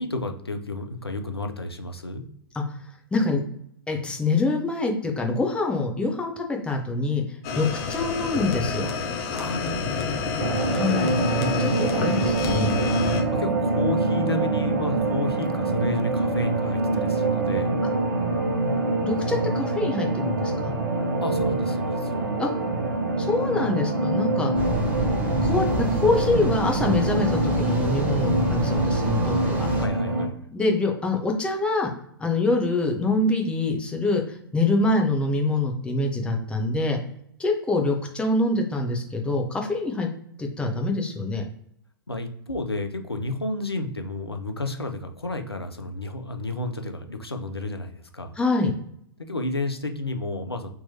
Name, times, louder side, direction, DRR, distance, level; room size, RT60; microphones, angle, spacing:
voice 1, 0.0-2.2 9.3-10.5 13.3-17.8 21.2-22.3 29.7-30.4 42.1-48.4 49.3-50.7, left 2 dB, 90° left, 6 dB, 0.6 m, -31 dB
voice 2, 3.1-3.4 3.9-8.9 10.7-12.7 19.0-20.8 22.4-22.5 23.2-24.5 25.4-29.7 30.5-31.9 32.2-37.0 37.4-40.1 40.4-41.4 48.4-48.7, left 2 dB, 10° left, 2 dB, 0.7 m, -25 dB
sound 1, 7.4-13.2, left 5 dB, 40° left, 0.7 m, -29 dB
sound 2, 10.4-30.3, right 2 dB, 60° right, 0.8 m, -25 dB
sound 3, 24.5-29.9, right 1 dB, 10° right, 1.0 m, -27 dB
3.5 x 3.0 x 2.8 m, 0.70 s
figure-of-eight pair, 110°, 13 cm